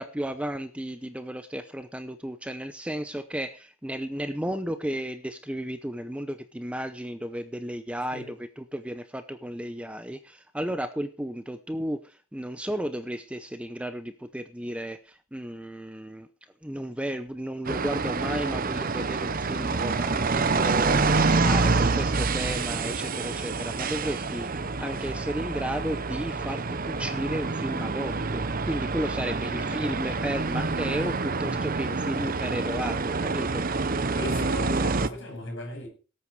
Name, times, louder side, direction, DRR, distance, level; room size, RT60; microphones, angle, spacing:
voice 1, 0.0-16.3 16.6-33.7, equal, 5° right, 0.7 m, -34 dB
sound 1, 17.7-35.1, right 3 dB, 40° right, 0.8 m, -27 dB
voice 2, 29.6-30.0 34.2-35.9, left 2 dB, 55° left, 7.2 m, -37 dB
18.0 x 8.6 x 4.7 m
head